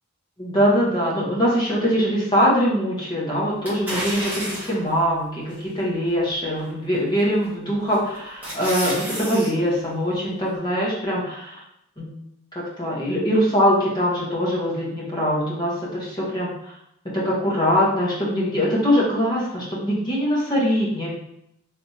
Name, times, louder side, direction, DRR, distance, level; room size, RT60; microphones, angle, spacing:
voice 1, 0.4-11.6 12.0-12.2 12.5-16.7 17.0-21.1, equal, 20° left, -6 dB, 1.1 m, -22 dB
sound 1, 3.6-4.9 5.5-5.6 7.2-7.5 7.9-9.5 9.8-9.9, equal, 10° right, 1.4 m, -30 dB
3.4 x 3.1 x 2.8 m, 0.79 s
head